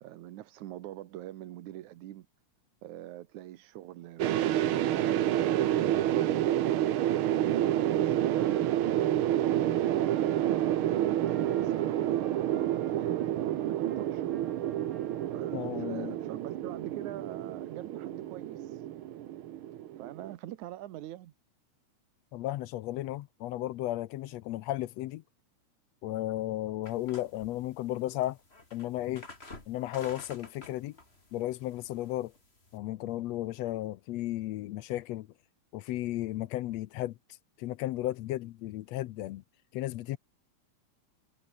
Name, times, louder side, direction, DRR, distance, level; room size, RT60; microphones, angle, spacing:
voice 1, 0.0-2.3 2.8-6.8 7.3-14.3 15.3-18.9 20.0-21.3, right 14 dB, 85° right, 2.5 m, -44 dB
sound 1, 4.2-20.3, right 12 dB, 65° right, 1.4 m, -29 dB
Trumpet, 8.3-15.5, right 4 dB, 30° right, 3.1 m, -56 dB
voice 2, 15.5-16.2 22.3-25.2 26.0-28.4 28.7-29.2 29.7-31.0 31.3-32.3 32.7-35.3 35.7-37.2 37.6-39.4 39.7-40.2, left 15 dB, 75° left, 1.8 m, -34 dB
sound 2, 26.8-32.8, left 2 dB, 20° left, 4.0 m, -51 dB
omnidirectional pair, 3.3 m